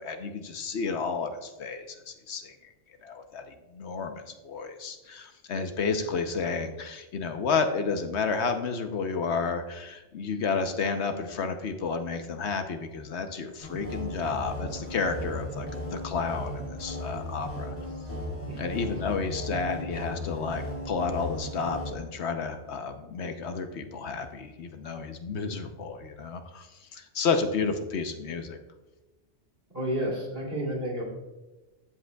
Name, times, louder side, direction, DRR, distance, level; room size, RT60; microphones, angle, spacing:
voice 1, 0.0-2.6 3.0-17.7 18.6-26.7 26.9-28.6, left 5 dB, 70° left, 7 dB, 1.0 m, -31 dB
sound 1, 13.6-21.9, left 1 dB, 35° left, 3.4 m, -36 dB
voice 2, 29.7-31.0, right 1 dB, 50° right, -3 dB, 2.8 m, -30 dB
14.0 x 7.7 x 2.3 m, 1.1 s
omnidirectional pair, 1.2 m